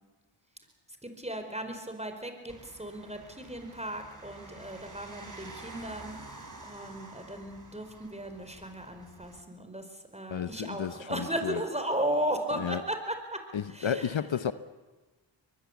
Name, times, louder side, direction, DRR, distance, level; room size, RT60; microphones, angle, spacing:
voice 1, 1.0-6.1 6.6-9.9 10.1-13.4 13.7-14.1, right 1 dB, 15° right, 4.8 m, -35 dB
sound 1, 2.5-9.4, right 2 dB, 40° right, 4.4 m, -49 dB
voice 2, 10.3-11.6 12.6-12.8 13.5-14.5, left 8 dB, 65° left, 1.0 m, -32 dB
23.0 x 20.5 x 8.2 m
cardioid pair, 40°, 49 cm